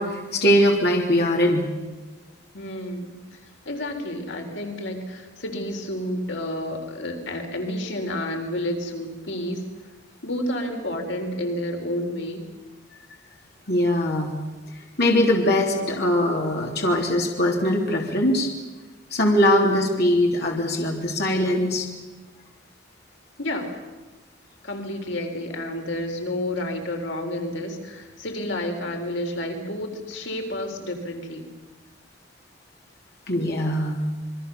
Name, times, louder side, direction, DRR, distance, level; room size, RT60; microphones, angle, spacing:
voice 1, 0.0-1.7 13.7-14.3 15.0-18.5 19.1-21.9 33.3-34.0, left 1 dB, 60° left, 0 dB, 3.3 m, -21 dB
voice 2, 2.5-3.4 3.7-9.6 10.2-12.4 23.4-23.7 24.6-31.5, left 1 dB, 90° left, 3 dB, 3.9 m, -30 dB
28.0 x 22.5 x 6.9 m, 1.2 s
head